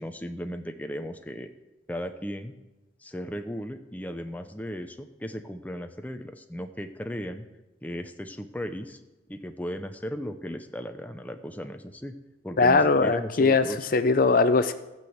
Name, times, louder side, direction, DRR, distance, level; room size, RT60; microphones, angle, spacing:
voice 1, 0.0-1.5 1.9-2.5 3.0-7.5 7.8-9.0 9.3-12.1 12.4-13.9, equal, 10° left, 6 dB, 0.7 m, -36 dB
voice 2, 12.6-13.6 13.9-14.7, left 3 dB, 50° left, 11 dB, 0.6 m, -20 dB
15.5 x 6.1 x 7.9 m, 1.0 s
head